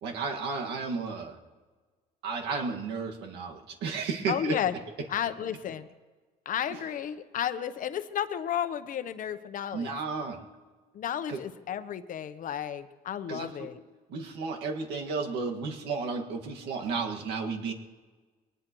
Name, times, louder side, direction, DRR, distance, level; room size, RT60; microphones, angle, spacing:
voice 1, 0.0-1.4 2.2-4.6 9.7-10.4 11.3-11.4 13.3-13.7 14.1-17.7, right 4 dB, 80° right, 2 dB, 1.9 m, -33 dB
voice 2, 4.3-4.7 5.1-5.9 6.4-9.9 10.9-13.8, left 9 dB, 50° left, 11 dB, 0.9 m, -32 dB
22.5 x 19.0 x 3.1 m, 1.4 s
cardioid pair, 110°, 17 cm